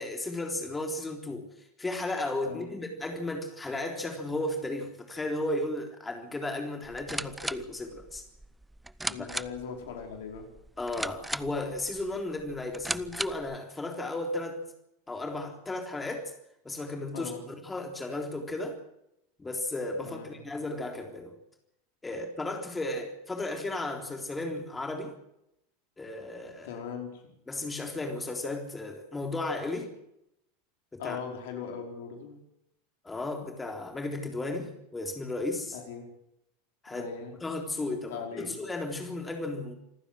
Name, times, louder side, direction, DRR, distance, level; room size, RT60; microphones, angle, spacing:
voice 1, 0.0-8.2 9.2-9.3 10.8-14.6 15.1-16.3 16.7-17.3 17.6-18.8 19.4-21.3 22.0-25.1 26.0-26.7 27.5-29.9 30.9-31.2 33.0-35.8 36.8-37.1 37.4-39.7, left 2 dB, 15° left, 4 dB, 3.7 m, -34 dB
sound 1, 6.8-13.6, right 1 dB, 5° right, 0.7 m, -38 dB
voice 2, 9.1-10.5 17.1-17.4 20.0-20.3 26.6-27.3 31.0-32.4 35.7-36.1 36.9-37.4 38.1-38.6, left 6 dB, 60° left, 4 dB, 5.0 m, -39 dB
27.0 x 15.0 x 7.8 m, 0.80 s
figure-of-eight pair, 80°, 0 cm